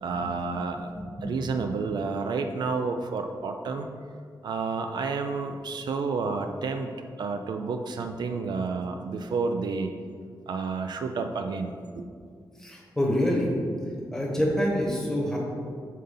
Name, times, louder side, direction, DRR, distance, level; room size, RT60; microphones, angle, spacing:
voice 1, 0.0-0.9 1.2-3.9 4.4-6.9 7.2-9.9 10.5-12.0, right 4 dB, 65° right, 6 dB, 0.4 m, -30 dB
voice 2, 0.9-1.5 12.6-13.5 14.1-15.4, equal, 5° left, -2 dB, 1.0 m, -27 dB
5.4 x 3.9 x 5.4 m, 2.2 s
wide cardioid pair, 180°, 8 cm